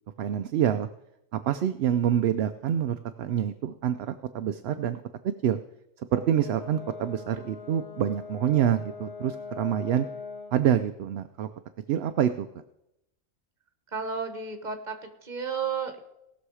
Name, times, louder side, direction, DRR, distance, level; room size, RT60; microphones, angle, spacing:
voice 1, 0.2-0.9 1.3-5.0 5.4-5.6 6.0-10.1 10.5-11.5 11.9-12.5, right 10 dB, 65° right, 9 dB, 0.7 m, -26 dB
Brass instrument, 6.1-10.6, left 5 dB, 55° left, 5.2 m, -41 dB
voice 2, 13.9-16.0, right 6 dB, 35° right, 7 dB, 1.3 m, -32 dB
19.0 x 6.3 x 4.8 m, 0.85 s
omnidirectional pair, 1.3 m